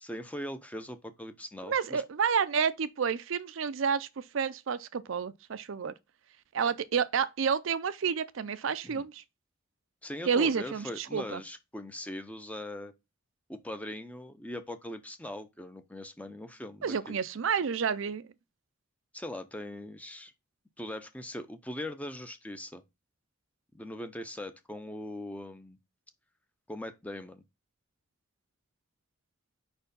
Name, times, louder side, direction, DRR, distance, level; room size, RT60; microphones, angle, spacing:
voice 1, 0.0-2.0 8.8-9.1 10.0-12.9 13.5-17.2 19.1-20.3 20.8-22.8 23.7-25.8 26.7-27.4, left 1 dB, 5° left, 0.6 m, -40 dB
voice 2, 1.6-5.9 6.5-9.2 10.3-11.4 16.8-18.2, right 6 dB, 70° right, 0.5 m, -30 dB
4.9 x 4.5 x 5.2 m
head